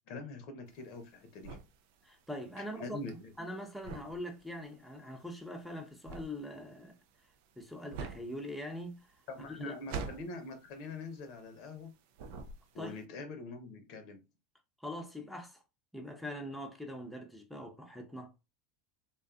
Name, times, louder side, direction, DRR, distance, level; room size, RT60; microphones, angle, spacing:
voice 1, 0.1-1.6 2.6-3.3 9.3-11.9 12.7-14.2, left 2 dB, 60° left, 0.7 m, -44 dB
sound 1, 0.7-11.9 12.1-13.0, right 5 dB, 65° right, 0.3 m, -46 dB
voice 2, 2.0-3.0 3.4-7.0 7.6-9.1 9.5-9.8 12.8-13.0 14.8-15.6 15.9-18.3, left 1 dB, ahead, 0.6 m, -42 dB
2.6 x 2.3 x 2.3 m
hypercardioid pair, 90°, 0 cm